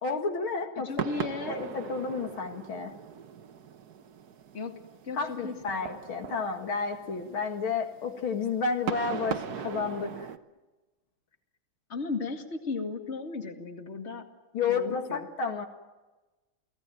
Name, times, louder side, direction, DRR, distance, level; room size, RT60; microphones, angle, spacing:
voice 1, 0.0-0.9 1.5-2.9 5.1-10.3 14.5-15.7, left 5 dB, 70° left, 5 dB, 2.8 m, -31 dB
voice 2, 0.8-1.6 4.5-4.7 5.0-5.8 11.9-14.2 14.7-15.3, left 4 dB, 30° left, 5 dB, 2.4 m, -36 dB
sound 1, 1.0-10.4, right 7 dB, 55° right, 1.4 m, -39 dB
29.5 x 18.5 x 9.2 m, 1.2 s
omnidirectional pair, 2.4 m